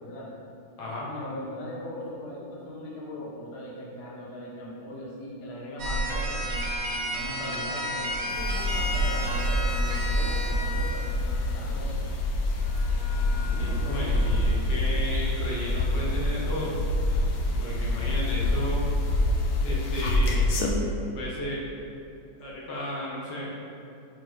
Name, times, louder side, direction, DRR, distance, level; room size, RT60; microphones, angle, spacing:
voice 1, 0.0-0.3 1.1-6.6 7.1-12.1 13.3-14.4 17.5-18.0, left 1 dB, 45° left, -5 dB, 1.0 m, -40 dB
voice 2, 0.8-1.1 13.5-16.8 17.6-18.9 19.6-20.5 21.1-21.6 22.4-23.5, left 1 dB, 70° left, -5 dB, 1.7 m, -34 dB
sound 1, 5.8-11.2 12.6-14.5, right 1 dB, 75° right, 0.6 m, -30 dB
sound 2, 8.3-20.7, left 2 dB, 90° left, 1.4 m, -27 dB
4.6 x 4.5 x 4.6 m, 2.7 s
omnidirectional pair, 2.1 m